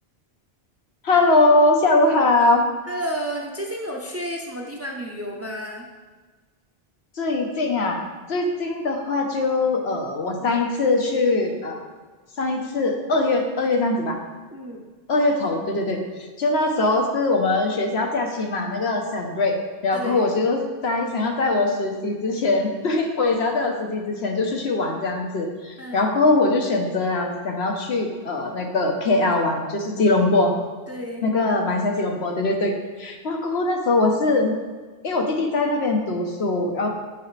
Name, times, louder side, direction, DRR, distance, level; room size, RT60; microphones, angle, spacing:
voice 1, 1.0-2.6 7.2-8.0 8.3-11.8 12.4-14.2 15.1-19.5 19.8-30.5 31.2-32.7 33.0-34.5 35.0-36.9, left 2 dB, 75° left, 2 dB, 1.2 m, -22 dB
voice 2, 2.9-5.9 14.5-14.8 19.9-20.2 25.8-26.1 30.9-31.3, equal, 15° right, -1 dB, 0.7 m, -31 dB
9.0 x 5.9 x 3.3 m, 1.4 s
omnidirectional pair, 1.1 m